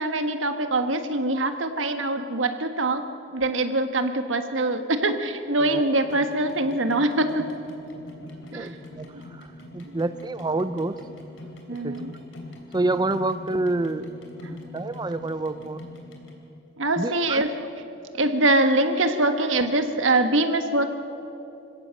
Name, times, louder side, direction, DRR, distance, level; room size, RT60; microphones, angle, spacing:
voice 1, 0.0-3.0 3.3-7.5 8.5-8.7 9.1-9.2 9.9-10.0 11.7-12.1 14.4-14.7 16.8-17.5 18.2-20.9, right 2 dB, 85° right, 8 dB, 1.5 m, -23 dB
sound 1, 6.0-16.3, left 1 dB, 80° left, 3.5 m, -42 dB
voice 2, 8.5-9.5 9.7-10.9 11.8-11.9 12.7-14.1 14.7-15.8 17.0-17.4, right 2 dB, 20° right, 12 dB, 0.4 m, -27 dB
26.0 x 16.5 x 7.6 m, 3.0 s
head